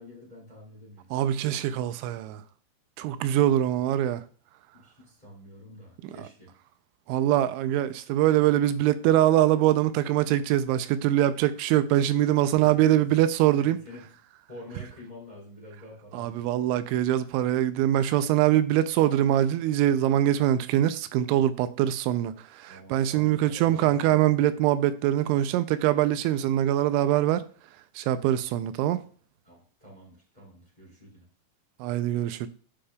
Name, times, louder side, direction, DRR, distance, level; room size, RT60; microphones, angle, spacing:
voice 1, 0.0-1.1 4.7-6.5 12.3-13.1 13.6-14.1 14.5-16.4 22.7-24.1 29.4-31.3, left 1 dB, 10° left, 2.5 m, -48 dB
voice 2, 1.1-2.4 3.0-4.2 6.2-6.3 7.1-13.8 16.1-27.4 28.0-29.0 31.8-32.5, right 12 dB, 85° right, 2.9 m, -23 dB
12.5 x 5.0 x 2.3 m
omnidirectional pair, 5.3 m